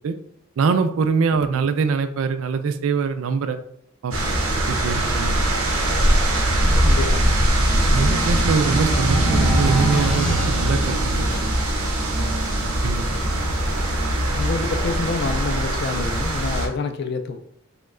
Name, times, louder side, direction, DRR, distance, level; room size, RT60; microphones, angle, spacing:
voice 1, 0.6-3.6 4.0-4.1 4.7-5.4 7.9-11.3 12.2-12.3 12.8-13.1, right 5 dB, 70° right, 9 dB, 0.3 m, -23 dB
sound 1, 4.1-16.7, right 1 dB, 85° right, 0.8 m, -21 dB
voice 2, 6.8-7.4 14.3-17.4, left 4 dB, 50° left, 7 dB, 0.3 m, -27 dB
sound 2, 8.2-11.6, right 2 dB, 5° left, 0.6 m, -29 dB
sound 3, 9.4-10.5 11.3-11.6 12.2-13.3, left 2 dB, 80° left, 0.7 m, -40 dB
3.0 x 2.1 x 3.6 m, 0.70 s
head